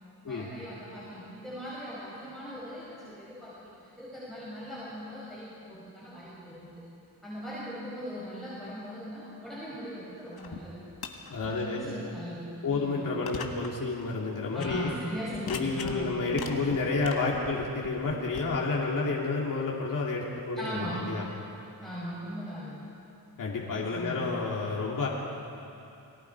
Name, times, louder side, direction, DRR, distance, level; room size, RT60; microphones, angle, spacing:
voice 1, 0.2-6.7 7.2-10.8 11.5-13.0 14.5-16.2 20.5-21.2 21.8-22.9 23.6-24.3, equal, ahead, -9 dB, 6.4 m, -39 dB
sound 1, 10.4-10.6 10.9-11.5 12.0-12.1 12.7-12.8 13.3-13.7 14.0-14.1 14.5-14.8 15.3-16.0 16.3-18.4, left 7 dB, 70° left, 1.9 m, -40 dB
voice 2, 11.3-11.9 12.6-14.9 15.4-21.2 23.4-25.1, left 3 dB, 55° left, -3 dB, 2.8 m, -30 dB
30.0 x 20.0 x 4.8 m, 2.8 s
cardioid pair, 95°, 38 cm